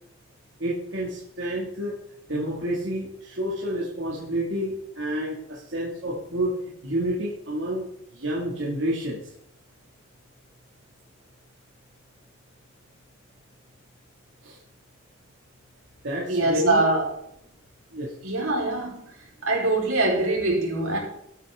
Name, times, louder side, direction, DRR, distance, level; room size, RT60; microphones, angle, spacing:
voice 1, 0.6-2.0 2.3-6.6 6.8-7.9 8.1-9.2 14.4-14.6 16.0-16.8 17.9-18.1, equal, 60° right, -5 dB, 2.4 m, -29 dB
voice 2, 16.3-17.0 18.2-19.0 19.4-21.0, right 2 dB, 90° right, -2 dB, 4.5 m, -23 dB
14.0 x 9.1 x 3.8 m, 0.76 s
head